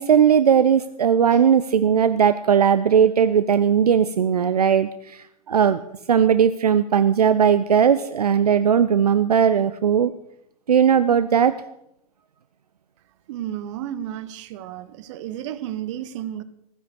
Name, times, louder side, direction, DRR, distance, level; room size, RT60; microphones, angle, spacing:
voice 1, 0.0-5.8 6.1-10.1 10.7-11.6, right 8 dB, 75° right, 12 dB, 0.6 m, -18 dB
voice 2, 13.3-16.4, right 11 dB, 50° right, 14 dB, 1.0 m, -32 dB
15.5 x 9.9 x 6.6 m, 0.80 s
figure-of-eight pair, 90°, 20 cm